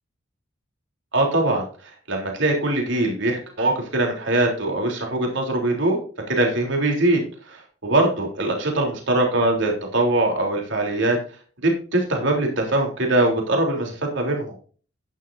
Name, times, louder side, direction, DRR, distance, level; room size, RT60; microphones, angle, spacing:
voice 1, 1.1-1.6 2.1-6.0 6.3-7.2 7.5-11.2 11.6-14.5, right 2 dB, 65° right, 1 dB, 3.5 m, -22 dB
11.5 x 10.5 x 2.7 m, 0.40 s
head